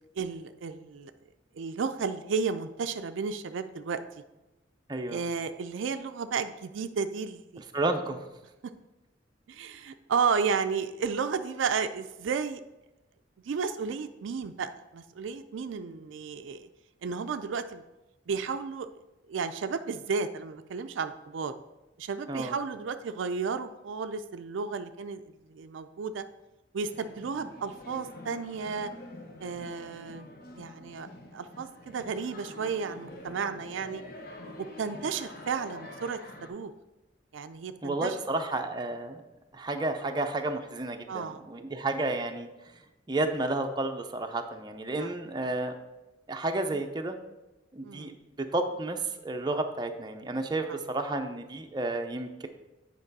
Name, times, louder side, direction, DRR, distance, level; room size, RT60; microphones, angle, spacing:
voice 1, 0.2-1.1 1.6-4.0 5.1-7.6 9.5-12.6 13.5-16.7 17.0-17.8 18.3-18.9 19.3-21.5 22.0-25.2 25.5-26.2 26.7-28.9 29.4-30.3 30.5-34.0 34.6-36.7 37.3-38.2 41.1-41.4 45.0-45.1 47.8-48.1, right 5 dB, 80° right, 9 dB, 0.4 m, -33 dB
voice 2, 4.9-5.2 7.7-8.2 22.3-22.6 37.8-39.2 39.5-42.5 43.1-45.8 46.3-47.2 47.7-48.2 48.5-52.5, right 2 dB, 25° right, 5 dB, 0.5 m, -31 dB
sound 1, 26.8-36.5, left 1 dB, 55° left, 1.0 m, -46 dB
8.9 x 5.3 x 4.1 m, 1.0 s
head